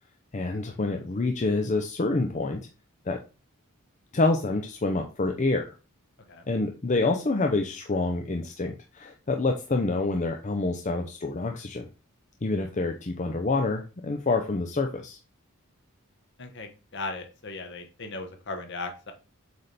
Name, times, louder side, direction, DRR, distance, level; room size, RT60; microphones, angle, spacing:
voice 1, 0.3-2.6 3.1-3.2 4.1-5.7 6.5-11.9 12.4-15.2, left 3 dB, 35° left, 3 dB, 0.6 m, -27 dB
voice 2, 16.4-19.1, left 3 dB, 55° left, 5 dB, 1.3 m, -37 dB
7.9 x 3.4 x 4.1 m, 0.32 s
head